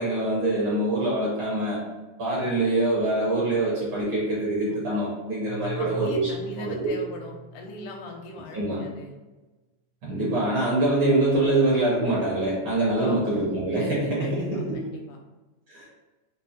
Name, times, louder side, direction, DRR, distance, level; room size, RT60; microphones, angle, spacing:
voice 1, 0.0-1.8 2.2-6.3 6.6-6.9 8.5-8.8 10.0-14.8 15.7-15.8, right 2 dB, 65° right, -7 dB, 1.2 m, -24 dB
Keyboard (musical), 5.5-8.4, left 2 dB, 90° right, 1.2 m, -41 dB
voice 2, 5.6-9.1 13.0-13.4 14.2-15.2, left 2 dB, 85° left, 1 dB, 2.1 m, -40 dB
5.3 x 2.1 x 4.2 m, 1.2 s
omnidirectional pair, 3.6 m